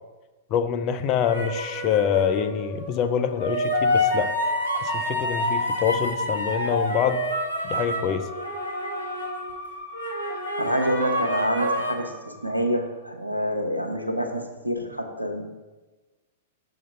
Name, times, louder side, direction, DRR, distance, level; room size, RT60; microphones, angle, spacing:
voice 1, 0.5-4.3 4.7-7.2 7.6-8.3, left 8 dB, 35° left, 9 dB, 0.4 m, -25 dB
sound 1, 1.2-2.5 3.4-9.6 9.9-11.9, left 1 dB, 80° left, 1.2 m, -27 dB
Musical instrument, 1.2-13.0, left 2 dB, ahead, 1.6 m, -42 dB
voice 2, 10.6-15.6, equal, 90° right, 3 dB, 0.8 m, -27 dB
6.3 x 3.9 x 5.4 m, 1.2 s
figure-of-eight pair, 105°, 0 cm